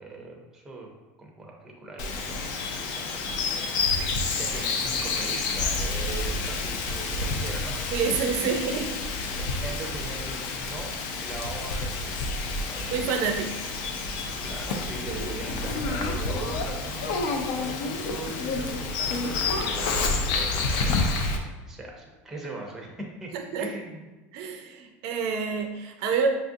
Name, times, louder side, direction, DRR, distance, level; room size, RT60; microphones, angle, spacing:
voice 1, 0.0-8.6 9.4-13.0 13.6-13.7 14.4-21.4 21.7-23.3 23.6-24.0, right 2 dB, 5° right, -1 dB, 0.5 m, -40 dB
Bird vocalization bird call bird song, 2.0-21.4, left 3 dB, 60° left, 0.4 m, -29 dB
voice 2, 7.9-8.9 12.9-13.5 23.3-23.7 24.3-26.3, right 6 dB, 55° right, 4 dB, 0.4 m, -28 dB
5.3 x 2.4 x 2.6 m, 1.2 s
cardioid pair, 170°, 6 cm